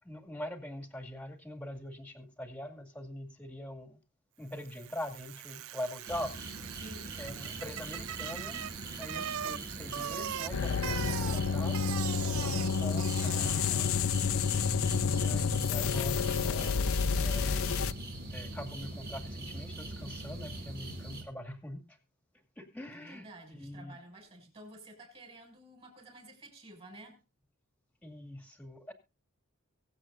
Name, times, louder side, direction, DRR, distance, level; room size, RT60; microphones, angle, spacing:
voice 1, 0.0-4.0 4.4-6.3 6.6-6.8 7.2-8.6 9.0-11.8 12.4-14.1 15.1-18.0 18.3-22.0 22.6-24.0 28.0-28.9, left 1 dB, 5° left, 2.2 m, -43 dB
Bicycle, 4.6-14.0, right 10 dB, 65° right, 0.6 m, -41 dB
sound 1, 6.1-21.2, right 1 dB, 45° right, 3.9 m, -42 dB
voice 2, 6.8-7.2 22.9-27.2, right 1 dB, 25° right, 6.3 m, -51 dB
sound 2, 10.5-17.9, left 6 dB, 65° left, 0.6 m, -30 dB
23.5 x 8.1 x 2.6 m
head